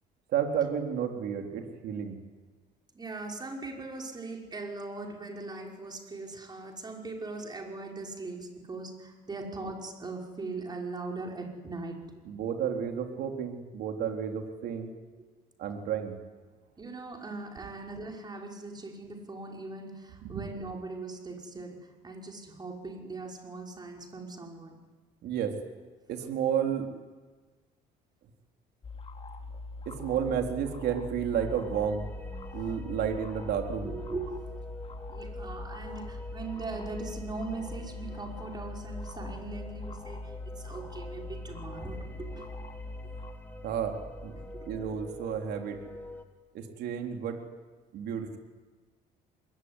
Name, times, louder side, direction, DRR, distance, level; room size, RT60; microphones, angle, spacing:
voice 1, 0.3-2.2 12.3-14.9 15.6-16.2 25.2-25.6 26.1-26.9 29.9-32.1 32.5-33.9 43.6-44.0 44.2-44.3 44.6-45.8 46.5-47.4 47.9-48.4, right 8 dB, 75° right, 3 dB, 3.8 m, -31 dB
voice 2, 2.9-12.0 16.8-24.8 33.8-34.6 35.1-42.5 44.3-44.7, right 3 dB, 25° right, 1 dB, 5.7 m, -40 dB
sound 1, 28.8-43.3, left 2 dB, 35° left, 3.0 m, -42 dB
sound 2, 31.3-46.2, left 1 dB, 10° left, 2.8 m, -45 dB
27.0 x 21.5 x 9.9 m, 1.3 s
cardioid pair, 110°, 17 cm